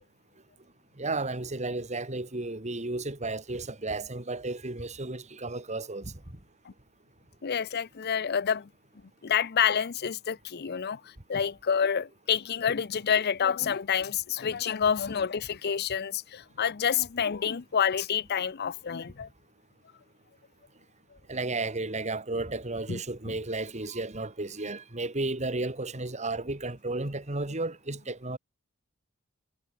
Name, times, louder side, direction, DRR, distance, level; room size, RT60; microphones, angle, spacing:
voice 1, 1.0-6.1 21.3-28.4, right 2 dB, 35° right, 2.3 m, -33 dB
voice 2, 7.4-8.7 9.2-11.0 11.3-19.3 22.9-23.0, left 7 dB, 50° left, 0.6 m, -28 dB
head